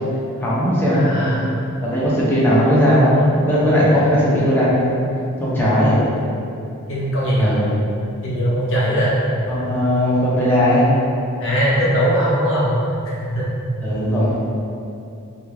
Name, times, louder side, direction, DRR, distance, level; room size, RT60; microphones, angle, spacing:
voice 1, 0.4-1.4 1.8-5.0 5.4-6.0 7.4-7.7 9.5-10.9 13.8-14.4, equal, 10° left, -8 dB, 0.5 m, -17 dB
voice 2, 0.9-1.5 3.9-4.2 6.9-7.5 8.2-9.2 11.4-12.7 13.2-13.5, equal, 65° left, -7 dB, 0.7 m, -20 dB
2.4 x 2.3 x 3.2 m, 2.7 s
head